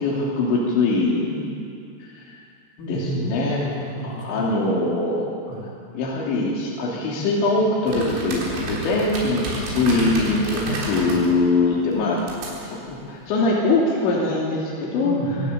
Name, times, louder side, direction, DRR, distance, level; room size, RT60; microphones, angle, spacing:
voice 1, 0.0-1.6 2.1-2.3 2.9-3.6 4.2-5.3 5.9-12.2 12.8-15.1, left 2 dB, 65° left, -5 dB, 5.0 m, -22 dB
voice 2, 2.8-4.5 5.5-5.7 15.0-15.5, right 1 dB, 85° left, -5 dB, 7.2 m, -30 dB
sound 1, 7.9-13.5, right 1 dB, 75° right, 6.4 m, -31 dB
26.0 x 14.5 x 8.2 m, 2.4 s
omnidirectional pair, 5.8 m